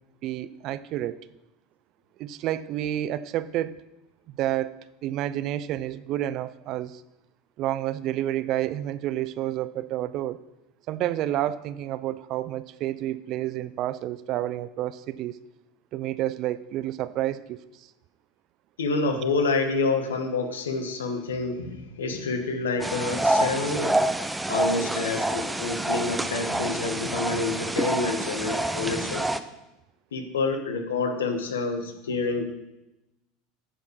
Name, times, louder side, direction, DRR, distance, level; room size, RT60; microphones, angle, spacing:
voice 1, 0.2-1.2 2.2-3.8 4.3-4.7 5.0-7.0 7.6-10.4 10.9-15.4 15.9-17.9, right 13 dB, 55° right, 16 dB, 0.5 m, -29 dB
voice 2, 18.8-24.0 24.5-29.3 30.1-32.4, left 3 dB, 90° left, 5 dB, 1.4 m, -28 dB
sound 1, 22.8-29.4, right 1 dB, 10° right, 0.7 m, -27 dB
10.0 x 7.1 x 4.7 m, 0.93 s
hypercardioid pair, 85°, 0 cm